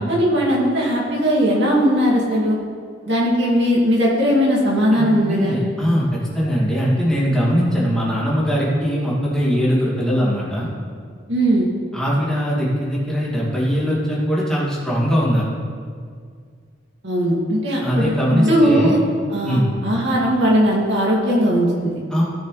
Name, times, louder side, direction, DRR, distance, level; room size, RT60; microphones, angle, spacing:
voice 1, 0.0-2.6 3.1-5.6 11.3-11.7 17.0-19.0 19.3-22.0, equal, 70° right, -4 dB, 2.6 m, -18 dB
voice 2, 4.9-10.7 11.9-15.5 17.8-19.0 19.4-19.8 22.1-22.2, equal, 5° left, -7 dB, 2.4 m, -20 dB
15.5 x 6.6 x 3.3 m, 2.1 s
head